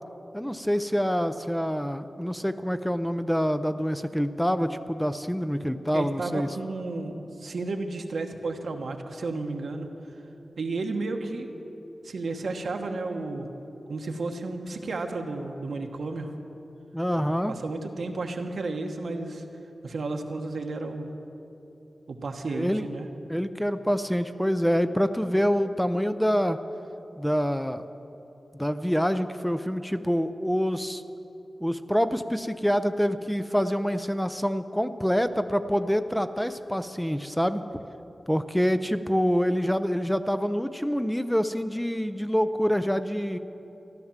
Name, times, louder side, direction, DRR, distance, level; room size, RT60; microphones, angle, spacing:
voice 1, 0.3-6.5 16.9-17.5 22.5-22.8 23.3-26.6 27.2-27.9 28.5-31.0 31.6-37.9 38.3-43.4, equal, 5° left, 10 dB, 0.5 m, -26 dB
voice 2, 5.9-9.9 10.6-11.5 12.0-13.5 13.9-16.3 17.2-19.4 19.8-21.1 22.1-23.1, right 3 dB, 80° right, 4 dB, 1.2 m, -32 dB
14.5 x 12.0 x 7.3 m, 3.0 s
wide cardioid pair, 125°, 0 cm